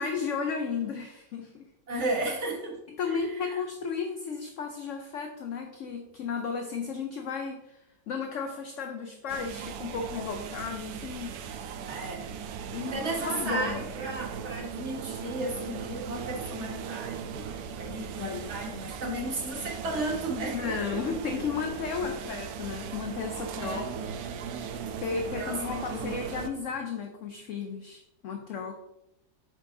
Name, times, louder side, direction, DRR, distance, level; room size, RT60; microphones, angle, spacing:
voice 1, 0.0-1.7 3.0-11.9 12.7-13.8 18.2-18.6 20.5-23.8 24.3-24.6 25.0-28.8, left 5 dB, 65° left, 4 dB, 0.9 m, -34 dB
voice 2, 1.9-2.8 3.1-3.6 11.9-12.4 12.7-21.0 23.6-23.9 25.3-26.1, right 1 dB, 45° right, -1 dB, 1.7 m, -34 dB
sound 1, 9.3-26.5, right 7 dB, 75° right, 1.1 m, -38 dB
7.2 x 5.5 x 2.7 m, 0.87 s
omnidirectional pair, 1.7 m